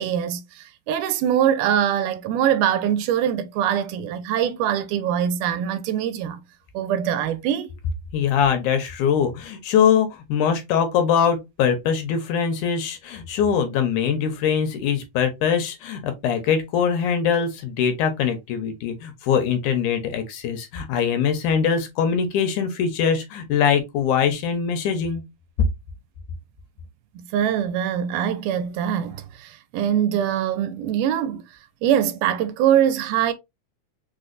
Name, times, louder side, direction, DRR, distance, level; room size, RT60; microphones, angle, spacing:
voice 1, 0.0-6.4 6.7-7.7 27.2-31.4 31.8-33.3, right 10 dB, 85° right, 2.0 m, -23 dB
voice 2, 8.1-25.2, left 7 dB, 75° left, 1.9 m, -22 dB
5.0 x 2.2 x 2.4 m
omnidirectional pair, 3.7 m